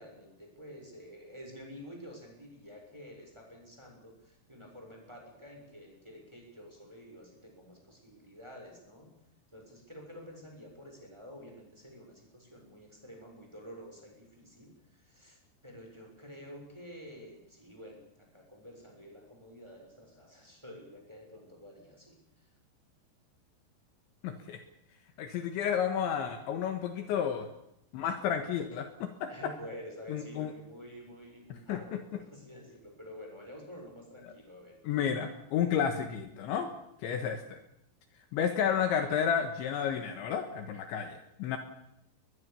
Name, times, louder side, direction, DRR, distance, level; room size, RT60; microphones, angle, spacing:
voice 1, 0.0-9.1 9.5-22.1 29.3-34.8, equal, 5° right, 1 dB, 6.5 m, -49 dB
voice 2, 24.2-24.6 25.2-27.5 27.9-29.3 30.1-30.5 31.5-32.0 34.9-36.7 37.0-37.6 38.3-41.6, left 8 dB, 70° left, 7 dB, 3.5 m, -31 dB
21.5 x 21.5 x 7.0 m, 0.82 s
omnidirectional pair, 5.9 m